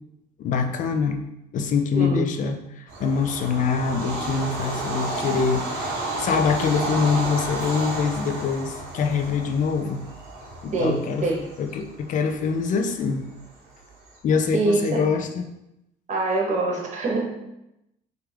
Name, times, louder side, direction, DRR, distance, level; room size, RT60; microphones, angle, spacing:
voice 1, 0.4-1.2 1.5-5.9 6.2-10.0 10.6-11.2 11.6-13.3 14.2-15.4, left 5 dB, 50° left, 5 dB, 0.4 m, -24 dB
voice 2, 1.9-2.2 10.7-11.4 14.5-15.0 16.1-17.3, right 3 dB, 45° right, -1 dB, 0.9 m, -24 dB
Bird vocalization bird call bird song / Train, 2.9-14.1, right 2 dB, 85° right, 0.9 m, -32 dB
3.3 x 2.4 x 3.3 m, 0.87 s
cardioid pair, 110°, 17 cm